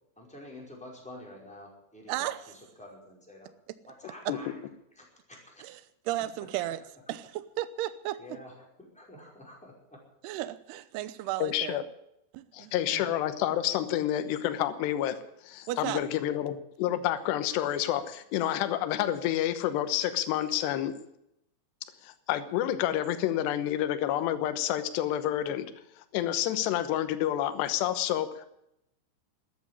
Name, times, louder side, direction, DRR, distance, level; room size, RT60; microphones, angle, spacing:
voice 1, 0.2-3.5 3.9-4.5 4.9-5.6 6.7-6.8 8.2-10.0, left 1 dB, ahead, -2 dB, 4.3 m, -48 dB
voice 2, 2.1-2.4 5.6-5.8 6.1-6.8 7.1-8.2 10.2-11.8 12.3-13.1 15.7-16.0, right 14 dB, 85° right, 13 dB, 2.3 m, -34 dB
voice 3, 11.4-11.8 12.5-15.2 15.4-20.9 22.0-25.7 26.1-28.5, left 12 dB, 70° left, 11 dB, 2.8 m, -29 dB
13.5 x 11.0 x 9.9 m, 0.80 s
omnidirectional pair, 5.8 m